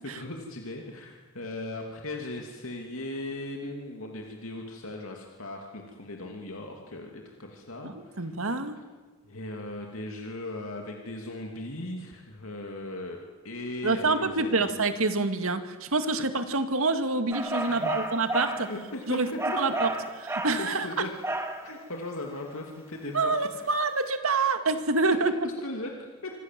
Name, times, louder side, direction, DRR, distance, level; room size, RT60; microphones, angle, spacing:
voice 1, 0.1-8.3 9.2-13.2 13.4-14.7 17.6-18.0 18.6-19.6 20.6-21.1 21.6-23.7 25.6-26.3, left 1 dB, 70° left, 1 dB, 2.7 m, -38 dB
voice 2, 7.8-8.8 13.8-18.7 19.1-19.3 19.6-19.9 20.2-21.0 23.1-25.5, right 3 dB, 75° right, 8 dB, 2.2 m, -27 dB
sound 1, 17.3-18.7 19.4-20.6 21.2-21.6, right 2 dB, 10° right, 2.4 m, -31 dB
26.5 x 25.5 x 7.6 m, 1.3 s
head